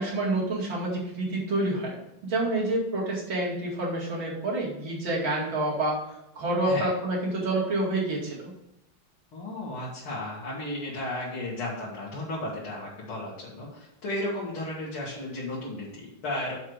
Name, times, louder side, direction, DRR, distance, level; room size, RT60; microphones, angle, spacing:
voice 1, 0.0-6.0 6.3-8.5, right 2 dB, 70° right, -4 dB, 3.1 m, -28 dB
voice 2, 9.3-16.6, left 1 dB, 90° left, -6 dB, 2.7 m, -34 dB
7.3 x 4.6 x 6.5 m, 0.86 s
omnidirectional pair, 2.3 m